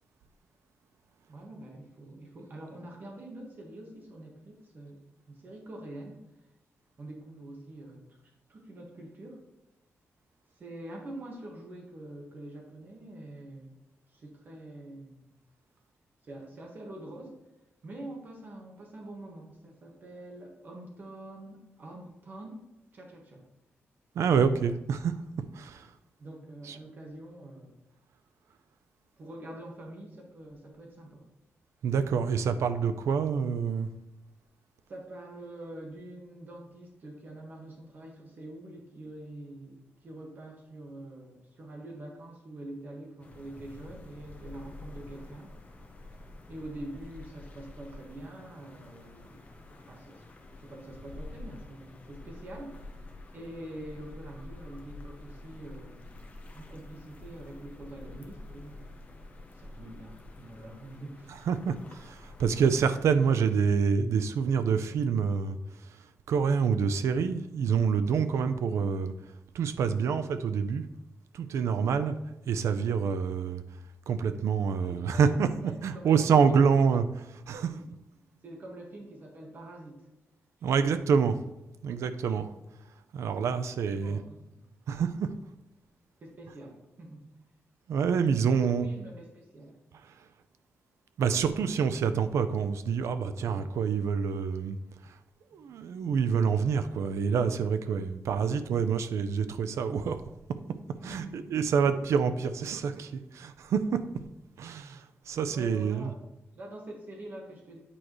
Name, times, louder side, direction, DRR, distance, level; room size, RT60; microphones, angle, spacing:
voice 1, 1.3-5.0 5.3-6.2 7.0-8.2 8.5-9.4 10.5-13.8 14.1-15.3 16.2-17.4 17.8-22.6 22.9-23.4 26.2-27.7 29.2-31.2 34.9-45.6 46.5-50.2 50.6-52.9 53.3-56.1 56.5-59.0 59.5-61.4 74.8-75.3 75.6-76.9 77.7-77.8 78.4-80.0 80.7-81.1 84.0-84.6 86.2-87.3 88.4-89.8 95.5-95.6 101.0-101.5 105.5-107.8, right 1 dB, 45° right, 0 dB, 1.5 m, -45 dB
voice 2, 24.2-25.1 25.5-25.9 26.7-26.8 31.8-33.9 61.5-65.6 66.3-69.1 69.5-70.8 71.3-72.2 72.5-73.6 74.1-77.0 77.3-77.7 80.6-81.3 81.8-82.5 83.1-84.2 84.9-85.3 87.9-88.9 91.2-94.8 95.5-100.2 101.0-104.0 104.6-106.1, right 6 dB, 85° right, 11 dB, 0.5 m, -27 dB
sound 1, 43.2-62.8, left 2 dB, 30° left, 0.8 m, -48 dB
8.7 x 4.8 x 3.1 m, 0.92 s
wide cardioid pair, 160°, 5 cm